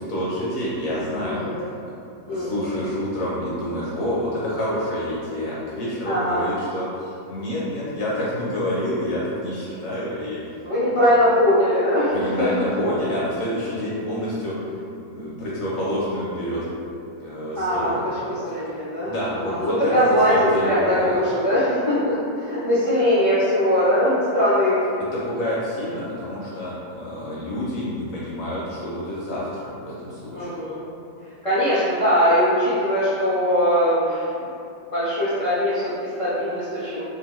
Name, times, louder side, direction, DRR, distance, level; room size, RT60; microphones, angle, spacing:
voice 1, 0.0-1.7 2.3-10.4 12.1-14.5 15.0-16.7 17.2-18.1 18.5-18.7 19.0-21.2 25.1-30.5, equal, 70° left, -7 dB, 0.9 m, -28 dB
voice 2, 1.2-1.7 2.3-2.7 6.1-6.4 10.6-12.5 17.6-24.8 30.3-30.8 31.4-34.3 34.9-37.0, equal, 50° left, -13 dB, 0.3 m, -21 dB
2.7 x 2.5 x 3.0 m, 2.5 s
omnidirectional pair, 1.7 m